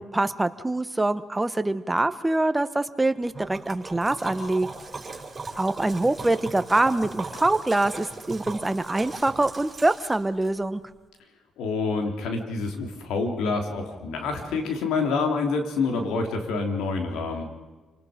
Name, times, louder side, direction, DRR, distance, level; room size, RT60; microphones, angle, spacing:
voice 1, 0.0-4.7 5.6-10.8, right 2 dB, 15° right, 12 dB, 1.1 m, -24 dB
Liquid, 3.3-10.5, right 3 dB, 30° right, 6.4 m, -38 dB
voice 2, 11.6-17.4, left 4 dB, 85° left, 4 dB, 3.3 m, -27 dB
28.0 x 20.0 x 5.2 m, 1.3 s
cardioid pair, 90°, 0 cm